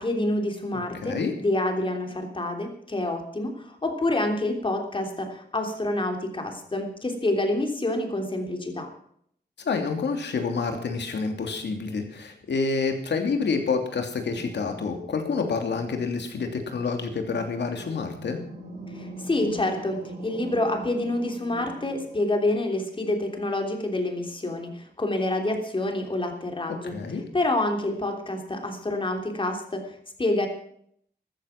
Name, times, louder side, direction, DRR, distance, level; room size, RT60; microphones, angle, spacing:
voice 1, 0.0-8.9 18.9-26.9 27.3-29.8 30.2-30.5, left 1 dB, 30° left, 4 dB, 3.3 m, -27 dB
voice 2, 0.9-1.3 9.6-18.4 26.8-27.2, left 4 dB, 80° left, 5 dB, 2.9 m, -28 dB
sound 1, 14.2-22.2, right 1 dB, 75° right, 4.1 m, -43 dB
14.0 x 14.0 x 5.9 m, 0.67 s
wide cardioid pair, 110°, 18 cm